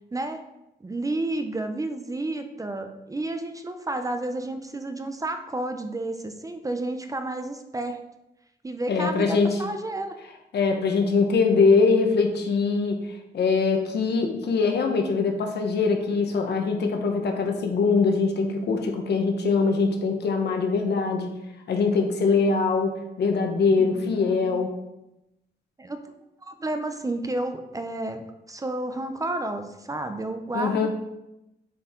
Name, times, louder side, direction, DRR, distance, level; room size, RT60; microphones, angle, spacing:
voice 1, 0.1-0.4 0.8-8.0 8.6-10.2 23.8-24.6 25.8-26.1 26.4-30.9, right 2 dB, 20° right, 7 dB, 0.5 m, -31 dB
voice 2, 8.9-9.6 10.5-21.3 21.7-24.7 30.5-30.9, left 4 dB, 70° left, 3 dB, 1.1 m, -23 dB
7.4 x 4.6 x 3.7 m, 0.91 s
cardioid pair, 125°, 18 cm